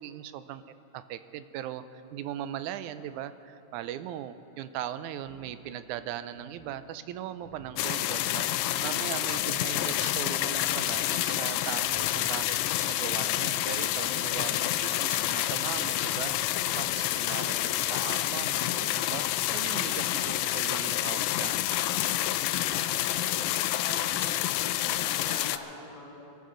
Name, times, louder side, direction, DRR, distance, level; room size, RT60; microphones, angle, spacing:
voice 1, 0.0-8.5 8.8-12.6 12.9-16.4 16.8-17.7 18.1-19.3 19.5-22.3, right 11 dB, 80° right, 12 dB, 1.9 m, -39 dB
sound 1, 5.2-5.7 6.3-6.8 7.4-7.9 9.6-10.1 10.7-11.2 11.8-12.3, right 1 dB, 40° right, 3.6 m, -52 dB
sound 2, 7.8-25.6, left 13 dB, 90° left, 1.5 m, -28 dB
voice 2, 14.3-14.7 17.4-18.2 20.1-20.5 22.7-26.4, left 1 dB, 70° left, -4 dB, 3.1 m, -45 dB
24.0 x 14.0 x 3.9 m, 2.7 s
omnidirectional pair, 3.7 m